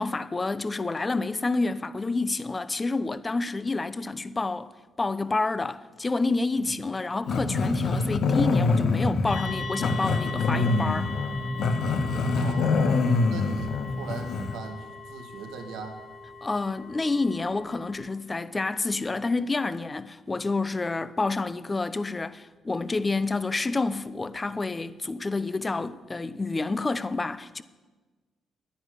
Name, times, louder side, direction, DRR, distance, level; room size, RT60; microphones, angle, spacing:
voice 1, 0.0-4.7 5.0-11.1 16.4-27.6, left 3 dB, 25° left, 0.7 m, -28 dB
Growling, 7.3-14.6, left 3 dB, 70° left, 1.5 m, -25 dB
sound 1, 9.3-18.0, left 5 dB, 50° left, 5.1 m, -40 dB
voice 2, 12.4-16.0, right 5 dB, 90° right, 2.3 m, -39 dB
10.5 x 10.5 x 9.9 m
cardioid pair, 90°, 0 cm